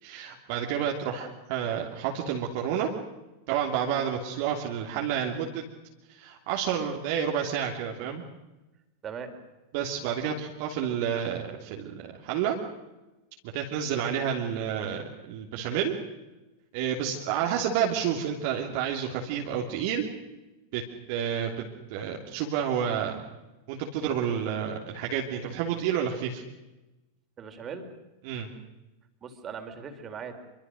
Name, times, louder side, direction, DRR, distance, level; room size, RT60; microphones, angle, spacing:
voice 1, 0.0-2.9 3.5-5.6 6.2-8.2 9.7-12.5 13.4-15.9 16.7-20.0 20.7-20.8 21.1-21.6 21.9-23.2 23.7-26.4 28.2-28.5, right 8 dB, 50° right, 0 dB, 3.1 m, -30 dB
voice 2, 27.4-27.9 29.2-30.3, right 6 dB, 25° right, 6 dB, 4.2 m, -39 dB
26.5 x 24.0 x 6.5 m, 1.0 s
figure-of-eight pair, 90°, 0 cm